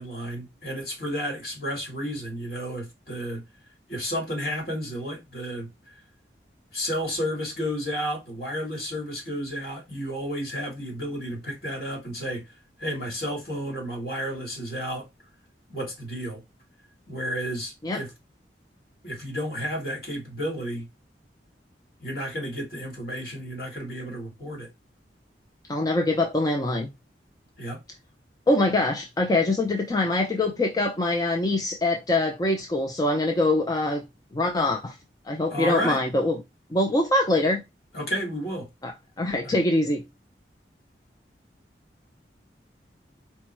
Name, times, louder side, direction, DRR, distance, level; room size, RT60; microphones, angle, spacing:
voice 1, 0.0-3.4 3.9-5.7 6.7-12.4 12.8-15.1 15.7-16.4 17.1-18.1 19.0-20.9 22.0-24.7 27.6-27.8 35.5-36.0 37.9-38.7 39.4-39.6, equal, 60° left, 2.4 m, -32 dB
voice 2, 25.7-26.9 28.5-34.0 34.3-35.0 35.3-36.4 36.7-37.6 38.8-40.0, left 2 dB, 20° left, 0.4 m, -24 dB
4.4 x 2.1 x 4.4 m
head